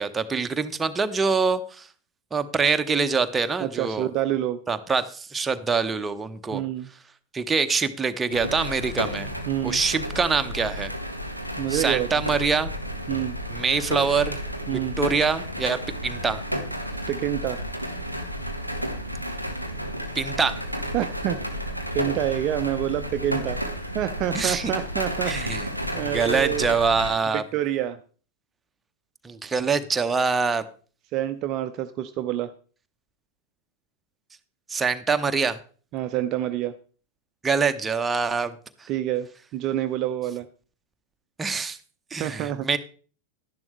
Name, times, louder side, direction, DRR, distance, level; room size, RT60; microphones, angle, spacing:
voice 1, 0.0-1.9 2.3-4.1 4.7-6.6 7.3-9.3 9.6-10.9 11.7-12.7 13.5-14.4 14.7-16.4 20.1-20.6 24.3-24.7 25.3-25.7 25.9-27.4 29.2-30.6 34.7-35.6 37.4-38.5 38.8-38.9 41.4-41.8 42.1-42.8, right 5 dB, 15° right, 9 dB, 0.9 m, -25 dB
voice 2, 3.6-4.6 6.5-6.9 9.5-9.8 11.6-12.1 13.1-13.4 14.7-14.9 17.1-17.6 20.9-21.5 21.9-23.6 23.9-26.8 27.3-28.0 31.1-32.5 35.9-36.8 38.9-39.3 39.5-40.5 42.2-42.7, right 12 dB, 40° right, 10 dB, 0.6 m, -27 dB
sound 1, 8.3-27.1, equal, 90° left, 1.3 m, -32 dB
12.0 x 10.5 x 3.2 m, 0.40 s
figure-of-eight pair, 90°, 0 cm